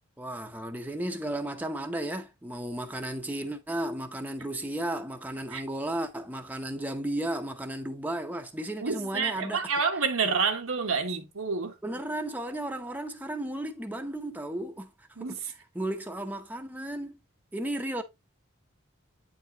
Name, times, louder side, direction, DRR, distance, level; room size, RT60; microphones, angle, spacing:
voice 1, 0.2-9.7 11.8-15.3 15.7-17.2 17.5-18.0, right 1 dB, 10° right, 0.7 m, -34 dB
voice 2, 8.8-11.7 15.2-15.5, right 5 dB, 85° right, 1.3 m, -28 dB
9.0 x 4.7 x 2.8 m
head